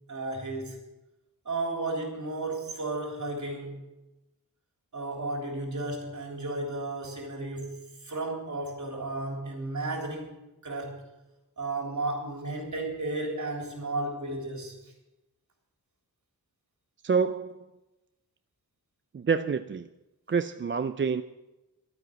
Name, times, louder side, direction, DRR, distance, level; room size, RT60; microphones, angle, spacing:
voice 1, 0.1-0.8 1.5-3.8 4.9-10.3 10.6-11.1 11.6-14.8, right 2 dB, 50° right, 3.5 m, -33 dB
voice 2, 17.0-17.7 19.1-19.9 20.3-21.2, right 5 dB, 35° right, 0.4 m, -27 dB
12.0 x 9.1 x 8.0 m
wide cardioid pair, 115°, 37 cm